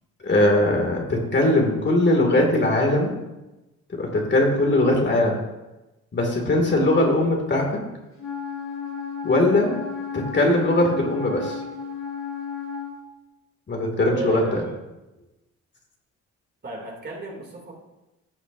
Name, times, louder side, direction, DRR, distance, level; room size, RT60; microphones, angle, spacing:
voice 1, 0.2-3.1 4.0-5.4 6.1-7.8 9.2-9.7 10.1-11.6 13.7-14.6, left 1 dB, 35° left, 1 dB, 2.4 m, -20 dB
Wind instrument woodwind instrument, 8.2-13.0, left 6 dB, 60° left, 3.3 m, -33 dB
voice 2, 14.1-14.8 16.6-17.7, right 3 dB, 35° right, -1 dB, 2.8 m, -34 dB
14.5 x 8.0 x 2.7 m, 1.0 s
cardioid pair, 90°, 30 cm